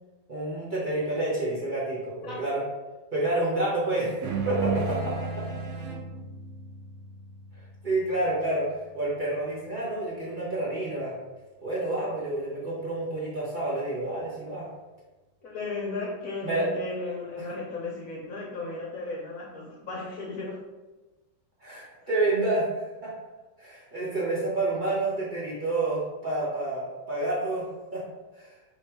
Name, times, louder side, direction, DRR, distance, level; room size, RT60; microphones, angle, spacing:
voice 1, 0.3-2.6 3.1-5.4 7.6-11.1 11.6-14.7 16.4-16.7 17.4-17.5 21.6-23.1 23.6-28.0 28.4-28.5, right 2 dB, 30° right, -8 dB, 1.2 m, -29 dB
sound 1, 4.2-9.0, right 4 dB, 70° right, 1.2 m, -34 dB
voice 2, 15.4-20.6, left 3 dB, 60° left, -3 dB, 1.0 m, -35 dB
3.3 x 3.1 x 4.5 m, 1.2 s
omnidirectional pair, 1.8 m